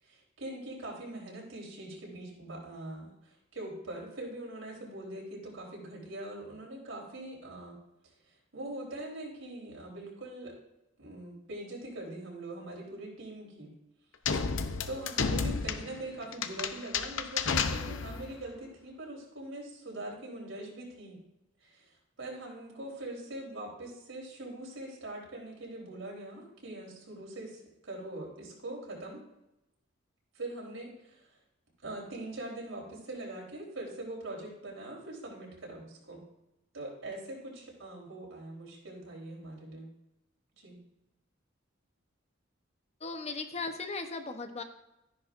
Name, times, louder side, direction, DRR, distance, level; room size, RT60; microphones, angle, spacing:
voice 1, 0.0-7.8 8.5-10.6 11.0-13.7 14.9-21.2 21.6-29.2 30.3-31.3 31.8-36.2 36.7-39.9 40.6-40.8, right 1 dB, 85° right, -2 dB, 3.7 m, -42 dB
sound 1, 14.2-18.3, left 5 dB, 80° left, 0.7 m, -32 dB
voice 2, 43.0-44.6, left 3 dB, 35° left, 7 dB, 0.9 m, -37 dB
13.0 x 10.0 x 2.6 m, 0.90 s
head